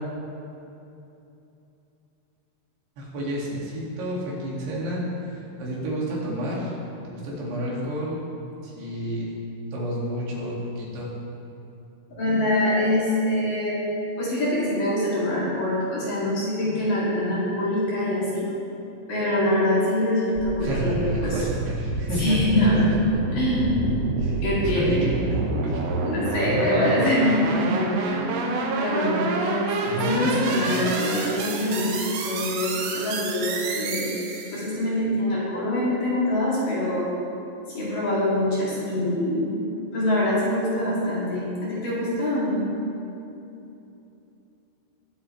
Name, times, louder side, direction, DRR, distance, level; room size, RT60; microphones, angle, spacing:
voice 1, 3.0-6.7 7.0-8.2 8.6-9.3 9.7-11.1 20.6-23.2 24.2-26.0 26.4-26.8 29.8-30.4, equal, 60° right, -5 dB, 4.0 m, -30 dB
voice 2, 12.1-13.8 14.2-18.5 19.1-21.4 22.2-22.8 23.3-23.9 24.4-25.0 26.0-32.0 32.2-34.1 34.5-37.1 37.7-39.5 39.9-42.6, left 1 dB, 50° left, -8 dB, 3.5 m, -24 dB
sound 1, 20.4-34.7, right 3 dB, 85° right, 3.7 m, -29 dB
21.5 x 7.8 x 3.3 m, 2.8 s
omnidirectional pair, 5.7 m